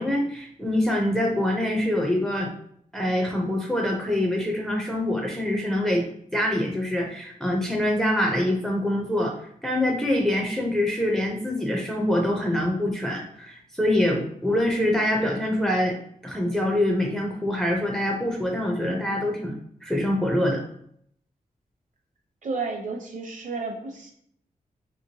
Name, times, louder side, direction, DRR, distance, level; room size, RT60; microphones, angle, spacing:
voice 1, 0.0-2.5 2.9-6.1 6.3-9.3 9.6-16.0 16.2-19.5 19.8-20.6, left 1 dB, 5° left, 0 dB, 0.4 m, -25 dB
voice 2, 22.4-24.1, right 4 dB, 60° right, 2 dB, 0.7 m, -32 dB
3.0 x 2.9 x 2.7 m, 0.66 s
wide cardioid pair, 145°, 15 cm